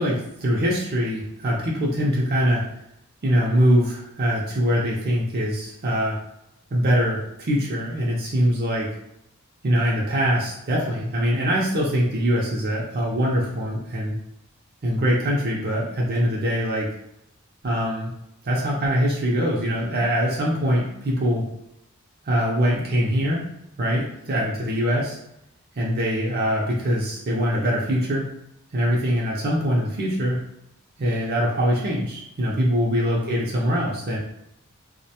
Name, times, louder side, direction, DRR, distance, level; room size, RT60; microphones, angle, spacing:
voice 1, 0.0-2.6 3.2-6.2 6.7-8.9 9.6-14.2 14.8-16.9 17.6-18.1 18.4-21.5 22.3-23.4 23.8-25.2 25.7-28.3 28.7-30.4 31.0-34.2, equal, 45° right, -4 dB, 0.5 m, -23 dB
2.4 x 2.1 x 2.8 m, 0.81 s
head